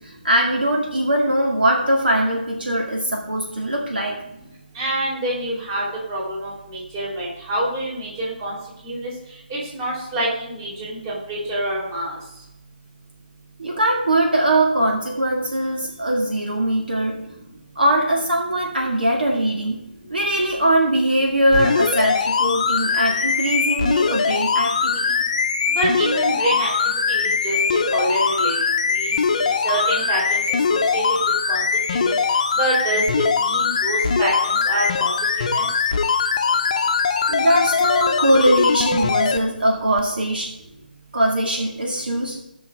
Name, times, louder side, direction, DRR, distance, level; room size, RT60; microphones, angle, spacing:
voice 1, 0.0-4.2 13.6-17.2 17.8-19.8 20.1-25.2 37.3-40.5 41.1-42.4, right 1 dB, 70° right, 1 dB, 2.1 m, -21 dB
voice 2, 4.7-8.6 8.8-9.1 9.5-12.2 25.7-28.6 28.9-30.4 30.7-31.0 31.5-31.6 31.9-32.2 32.5-33.0 33.3-35.1 35.4-35.7, right 1 dB, 25° right, -4 dB, 4.1 m, -26 dB
sound 1, 21.5-39.4 40.0-40.1, left 5 dB, 40° left, 0.8 m, -21 dB
18.0 x 6.2 x 3.6 m, 0.86 s
figure-of-eight pair, 150°, 5 cm